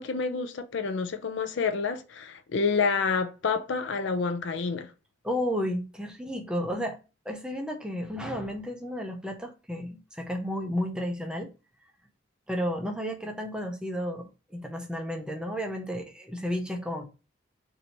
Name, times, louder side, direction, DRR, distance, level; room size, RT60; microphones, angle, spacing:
voice 1, 0.0-4.9, left 5 dB, 60° left, 0.4 m, -28 dB
voice 2, 5.2-7.0 7.3-11.5 12.5-17.1, equal, 5° right, 0.5 m, -32 dB
2.8 x 2.6 x 4.3 m
head